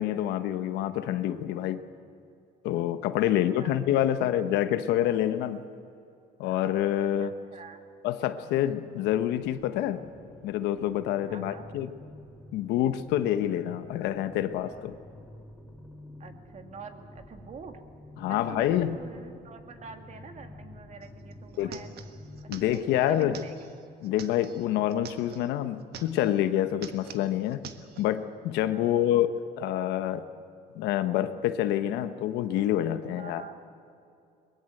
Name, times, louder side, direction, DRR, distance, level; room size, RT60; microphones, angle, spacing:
voice 1, 0.0-1.8 2.6-5.6 6.4-7.3 8.0-10.1 10.4-11.9 12.5-15.0 18.2-19.0 21.6-21.7 22.5-23.3 24.0-27.6 28.0-30.2 30.7-33.4, left 12 dB, 90° left, 10 dB, 1.2 m, -27 dB
voice 2, 3.2-4.3 7.2-7.9 11.3-11.7 16.2-17.8 18.3-22.0 22.4-23.7 28.7-29.0 33.2-33.6, right 5 dB, 45° right, 6 dB, 2.2 m, -46 dB
sound 1, 9.4-23.2, left 1 dB, 5° left, 4.7 m, -49 dB
sound 2, 21.0-21.1 21.3-25.5 25.8-26.4 26.7-28.1, right 8 dB, 70° right, 1.5 m, -46 dB
22.0 x 21.5 x 7.9 m, 2.6 s
cardioid pair, 110°, 17 cm